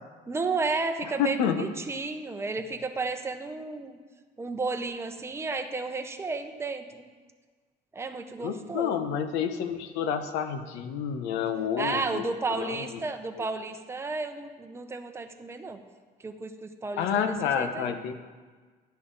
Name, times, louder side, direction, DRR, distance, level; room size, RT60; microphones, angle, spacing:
voice 1, 0.3-4.0 4.4-7.0 7.9-9.1 11.8-15.8 16.2-17.9, right 3 dB, 15° right, 6 dB, 0.8 m, -33 dB
voice 2, 1.2-1.6 8.4-12.2 12.5-13.0 17.0-18.1, left 7 dB, 85° left, 8 dB, 1.0 m, -29 dB
11.0 x 10.0 x 4.0 m, 1.4 s
cardioid pair, 130°, 17 cm